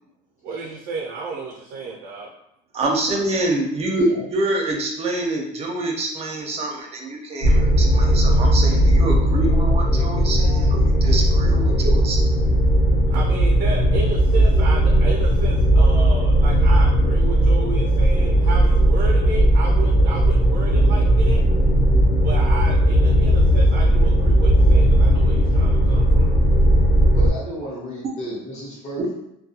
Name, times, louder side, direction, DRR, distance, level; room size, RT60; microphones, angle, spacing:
voice 1, 0.4-2.3 13.1-21.4 22.2-26.3, right 4 dB, 85° right, -1 dB, 0.5 m, -32 dB
voice 2, 2.7-12.2, right 2 dB, 35° right, 1 dB, 0.5 m, -26 dB
voice 3, 3.9-4.2 27.1-29.2, equal, 35° left, -8 dB, 0.9 m, -33 dB
sound 1, 7.4-27.3, right 1 dB, 85° left, 0.7 m, -17 dB
2.2 x 2.2 x 2.8 m, 0.79 s
cardioid pair, 140°, 19 cm